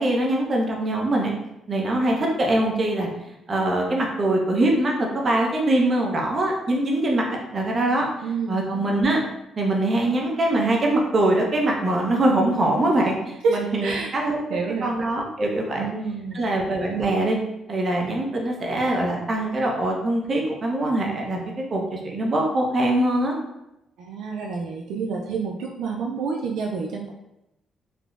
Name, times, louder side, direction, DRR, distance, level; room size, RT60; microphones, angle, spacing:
voice 1, 0.0-1.3 1.7-3.1 3.5-8.1 8.5-9.2 9.6-14.4 14.8-15.9 16.3-17.4 17.7-21.4 21.7-23.3, right 1 dB, 40° right, 0 dB, 0.6 m, -23 dB
voice 2, 8.2-8.8 13.4-14.1 14.5-14.9 15.7-16.6 24.0-27.1, right 4 dB, 80° right, -1 dB, 0.3 m, -28 dB
3.5 x 2.0 x 2.4 m, 0.88 s
cardioid pair, 90°, 0 cm